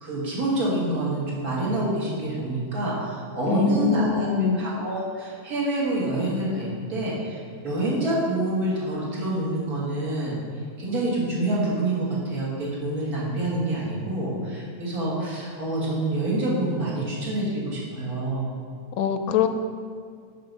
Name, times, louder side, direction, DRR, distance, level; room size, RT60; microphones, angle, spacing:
voice 1, 0.0-10.4 10.8-18.5, right 1 dB, 80° right, -6 dB, 2.4 m, -27 dB
voice 2, 3.4-4.7 19.0-19.5, left 7 dB, 75° left, 8 dB, 1.0 m, -23 dB
6.3 x 6.1 x 5.2 m, 2.2 s
omnidirectional pair, 1.6 m